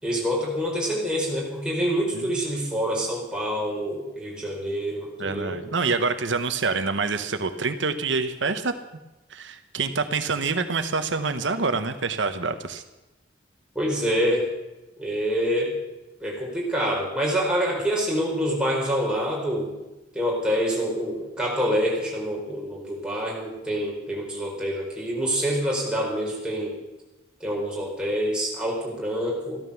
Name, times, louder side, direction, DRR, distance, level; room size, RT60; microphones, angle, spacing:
voice 1, 0.0-5.6 13.7-14.4 15.0-15.7 16.2-19.7 20.1-26.7 27.4-29.6, equal, 5° right, -3 dB, 4.7 m, -26 dB
voice 2, 5.2-8.7 9.3-12.8, right 4 dB, 85° right, 9 dB, 1.0 m, -26 dB
15.0 x 13.0 x 7.1 m, 1.0 s
head